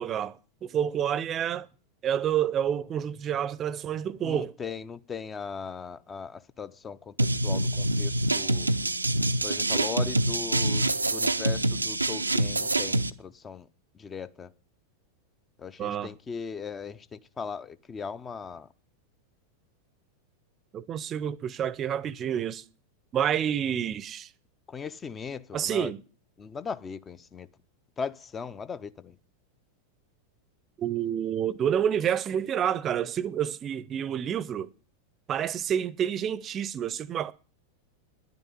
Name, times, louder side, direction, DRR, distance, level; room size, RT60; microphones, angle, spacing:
voice 1, 0.0-1.7 2.0-4.5 15.8-16.1 20.7-22.6 23.1-24.3 25.5-26.0 30.8-34.7 35.3-37.3, right 9 dB, 30° right, 0.7 m, -29 dB
voice 2, 4.2-8.7 9.4-13.7 13.9-14.5 15.6-18.7 24.7-25.9 26.4-27.5 28.0-29.2, left 6 dB, 20° left, 0.7 m, -38 dB
sound 1, 7.2-13.1, right 1 dB, 85° right, 0.6 m, -26 dB
10.5 x 9.2 x 9.6 m
figure-of-eight pair, 90°, 0 cm